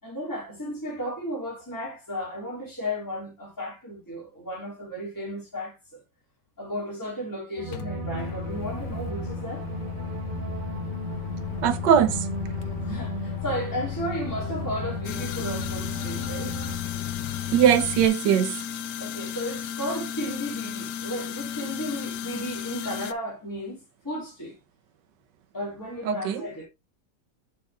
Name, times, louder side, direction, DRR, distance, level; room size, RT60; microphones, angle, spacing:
voice 1, 0.0-6.0 6.6-9.7 12.8-16.5 19.0-24.6 25.5-26.7, equal, 10° left, 3.2 m, -34 dB
sound 1, 7.6-16.8, right 5 dB, 40° right, 0.8 m, -36 dB
Microwave oven, 7.7-18.1, left 13 dB, 85° left, 1.4 m, -35 dB
voice 2, 11.6-12.3 17.5-18.6 26.1-26.4, right 9 dB, 85° right, 1.4 m, -20 dB
sound 2, 15.0-23.1, left 9 dB, 65° left, 1.1 m, -34 dB
8.2 x 5.3 x 3.5 m
omnidirectional pair, 1.8 m